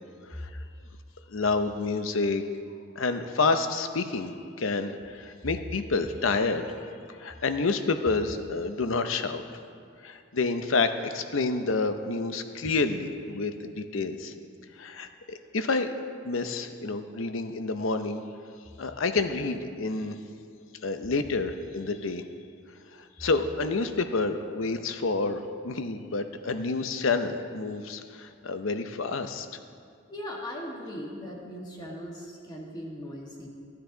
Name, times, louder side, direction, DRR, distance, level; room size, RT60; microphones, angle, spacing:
voice 1, 1.3-2.4 3.0-9.4 10.0-14.3 14.8-15.9 16.2-18.2 18.8-20.2 20.8-22.2 23.2-29.5, left 3 dB, 75° left, 9 dB, 0.7 m, -29 dB
voice 2, 30.1-33.5, equal, 20° left, -2 dB, 1.6 m, -39 dB
15.0 x 9.6 x 3.9 m, 2.3 s
head